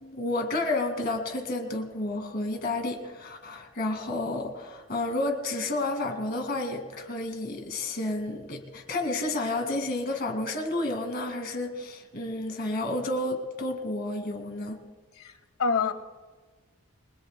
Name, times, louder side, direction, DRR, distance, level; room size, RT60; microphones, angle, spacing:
voice 1, 0.0-14.8, left 2 dB, 45° left, 4 dB, 2.1 m, -31 dB
voice 2, 15.1-15.9, left 5 dB, 75° left, 9 dB, 1.4 m, -27 dB
29.5 x 21.0 x 2.2 m, 1.4 s
head